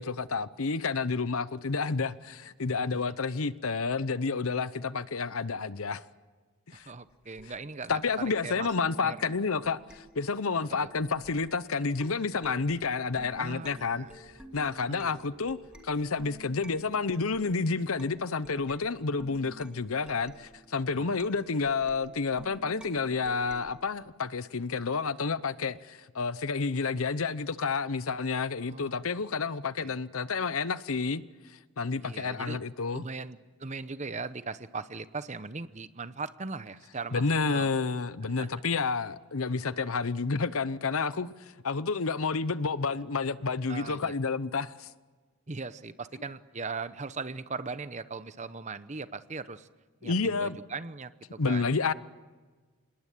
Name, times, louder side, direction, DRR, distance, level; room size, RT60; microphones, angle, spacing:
voice 1, 0.0-6.0 6.7-6.9 7.9-15.6 15.8-31.2 31.8-33.1 37.1-44.9 50.0-50.6 51.4-51.9, left 4 dB, 70° left, 0.8 m, -30 dB
voice 2, 6.7-8.7 9.0-9.2 10.8-10.9 13.4-14.1 14.9-15.2 21.0-21.2 28.6-29.0 29.8-30.0 32.0-32.6 32.9-37.7 38.3-38.5 43.7-44.2 45.5-49.7 50.0-51.8, right 4 dB, 30° right, 0.9 m, -39 dB
sound 1, 7.4-11.6 12.0-23.7, right 2 dB, 5° right, 2.3 m, -52 dB
27.0 x 20.5 x 8.5 m
head